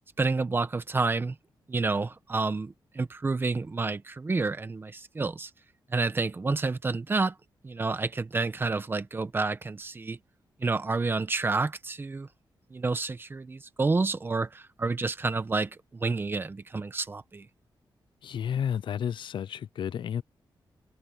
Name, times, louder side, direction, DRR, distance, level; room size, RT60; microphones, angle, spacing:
voice 1, 0.2-1.4 1.7-5.5 5.9-7.3 7.6-10.2 10.6-12.3 12.7-17.5, right 3 dB, 25° right, 1.1 m, -29 dB
voice 2, 18.2-20.2, left 8 dB, 70° left, 0.6 m, -31 dB
wide cardioid pair, 135°, 8 cm